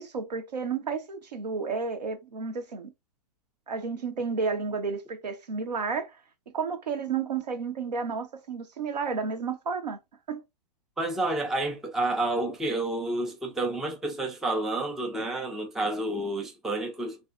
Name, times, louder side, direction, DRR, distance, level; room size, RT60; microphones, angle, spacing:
voice 1, 0.0-2.9 3.7-6.2 6.5-10.0 10.3-10.4, right 5 dB, 80° right, 0.7 m, -31 dB
voice 2, 11.0-17.2, right 2 dB, ahead, 0.3 m, -29 dB
2.5 x 2.0 x 2.3 m
hypercardioid pair, 125°, 21 cm